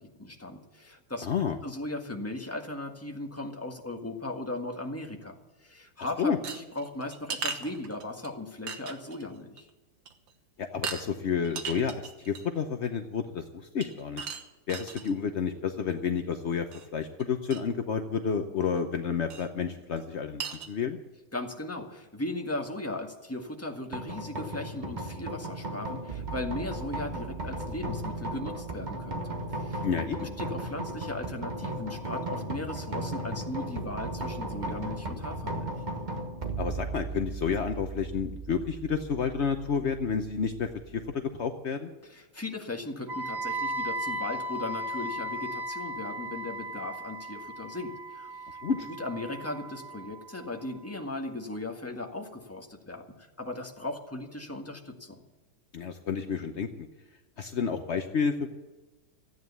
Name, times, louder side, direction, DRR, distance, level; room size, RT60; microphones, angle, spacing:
voice 1, 0.0-1.3 1.6-9.7 21.3-29.8 30.2-35.7 42.0-48.6 49.0-55.2, left 2 dB, 10° left, 2 dB, 1.4 m, -37 dB
voice 2, 1.2-1.6 6.2-6.4 10.6-14.3 14.7-21.0 29.8-30.2 36.6-41.9 48.6-48.9 55.7-56.9 57.4-58.5, left 6 dB, 75° left, 6 dB, 0.6 m, -30 dB
sound 1, 6.4-8.3 8.7-9.2 9.6-9.7 10.1-10.3 10.8-11.0 11.4-12.6 13.8-15.1 16.7-16.9 17.2-17.3 17.5-17.6 19.3-19.5 20.0-20.1 20.4-20.7, right 6 dB, 65° right, 1.9 m, -37 dB
sound 2, 23.9-41.1, right 2 dB, 25° right, 1.1 m, -36 dB
Wind instrument woodwind instrument, 43.1-51.0, right 1 dB, 45° right, 0.5 m, -37 dB
14.5 x 9.3 x 8.3 m, 1.1 s
omnidirectional pair, 2.3 m